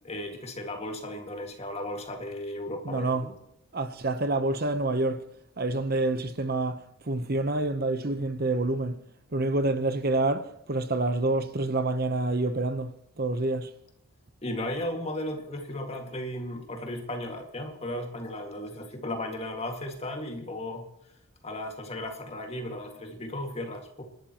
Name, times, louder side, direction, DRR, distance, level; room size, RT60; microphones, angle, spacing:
voice 1, 0.0-3.2 14.4-20.8 21.4-24.0, left 1 dB, 30° left, 2.0 m, -35 dB
voice 2, 2.8-3.3 3.7-5.2 5.6-6.8 7.0-9.0 9.3-13.7, right 2 dB, 45° right, 0.9 m, -27 dB
29.5 x 12.0 x 3.0 m
head